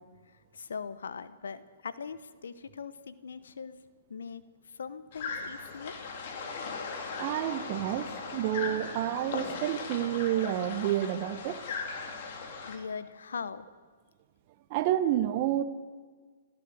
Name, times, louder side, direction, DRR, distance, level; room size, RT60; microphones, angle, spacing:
voice 1, 0.5-3.8 4.1-6.0 12.7-13.7, left 6 dB, 85° left, 14 dB, 0.9 m, -41 dB
sound 1, 5.1-12.8, left 4 dB, 55° left, 3.1 m, -38 dB
voice 2, 7.2-11.6 14.7-15.6, right 12 dB, 40° right, 10 dB, 1.0 m, -29 dB
27.5 x 12.5 x 7.8 m, 1.5 s
hypercardioid pair, 135°, 0 cm